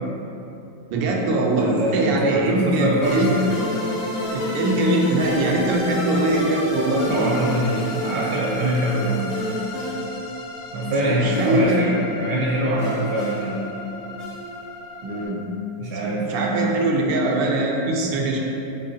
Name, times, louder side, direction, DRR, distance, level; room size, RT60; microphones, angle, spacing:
voice 1, 0.9-3.3 4.3-7.1 11.0-11.8 15.0-15.4 16.0-18.4, right 1 dB, 85° right, 0 dB, 1.4 m, -22 dB
voice 2, 1.6-3.5 7.1-9.3 10.7-13.5 15.8-16.8 18.3-18.4, right 1 dB, 65° right, -5 dB, 1.0 m, -23 dB
sound 1, 3.0-15.2, left 1 dB, 85° left, 0.5 m, -30 dB
6.6 x 2.8 x 2.7 m, 3.0 s
omnidirectional pair, 2.1 m